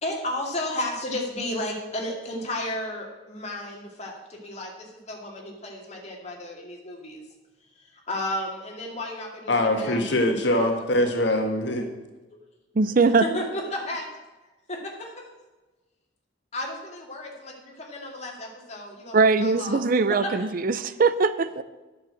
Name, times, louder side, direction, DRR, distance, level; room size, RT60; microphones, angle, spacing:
voice 1, 0.0-7.2 8.1-10.0 10.5-10.8 13.0-14.0 14.7-15.2 16.5-19.8 20.1-20.5, left 1 dB, 35° left, -1 dB, 2.5 m, -33 dB
voice 2, 9.5-11.9, left 1 dB, 70° left, 3 dB, 1.7 m, -23 dB
voice 3, 12.8-13.2 19.1-21.6, right 4 dB, 50° right, 14 dB, 0.5 m, -21 dB
9.7 x 7.0 x 7.8 m, 1.1 s
head